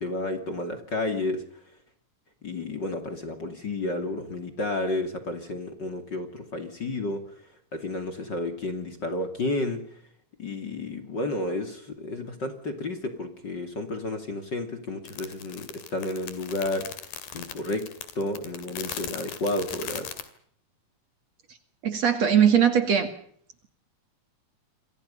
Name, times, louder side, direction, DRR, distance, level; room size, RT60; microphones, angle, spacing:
voice 1, 0.0-1.4 2.4-7.2 7.7-9.8 10.4-16.9 17.3-17.9 18.1-20.1, left 2 dB, 35° left, 7 dB, 2.9 m, -31 dB
sound 1, 15.1-20.3, left 8 dB, 85° left, 4.1 m, -38 dB
voice 2, 21.8-23.1, right 8 dB, 50° right, 9 dB, 3.0 m, -20 dB
28.5 x 24.5 x 5.5 m, 0.63 s
omnidirectional pair, 4.0 m